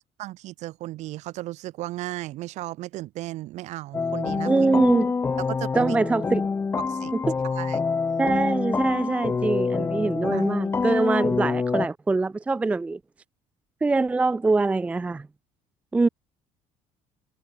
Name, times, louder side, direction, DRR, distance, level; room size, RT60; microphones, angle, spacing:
voice 1, 0.2-4.7 5.6-6.0 6.9-7.1 7.4-7.8 10.3-10.5, right 16 dB, 65° right, 5.9 m, -35 dB
sound 1, 3.9-11.9, left 5 dB, 20° left, 1.9 m, -26 dB
voice 2, 4.4-5.1 5.7-6.5 7.3-7.4 8.2-13.0 13.8-15.3 15.9-16.1, right 3 dB, 10° right, 0.5 m, -23 dB
cardioid pair, 170°, 13 cm